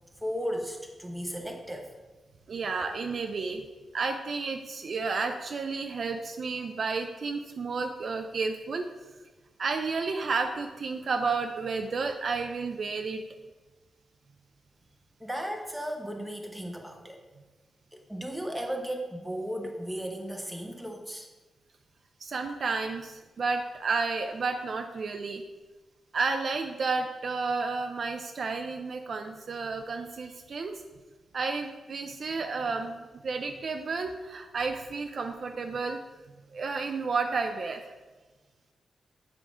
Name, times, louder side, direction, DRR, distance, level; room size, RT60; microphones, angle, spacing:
voice 1, 0.2-1.9 15.2-17.2 17.9-21.3, equal, 5° right, 2 dB, 0.7 m, -35 dB
voice 2, 2.5-3.7 3.9-8.9 9.6-13.2 22.2-25.4 26.1-30.8 31.3-36.0 36.5-37.8, right 4 dB, 45° right, 5 dB, 0.4 m, -31 dB
8.1 x 3.7 x 4.9 m, 1.2 s
wide cardioid pair, 175°, 0 cm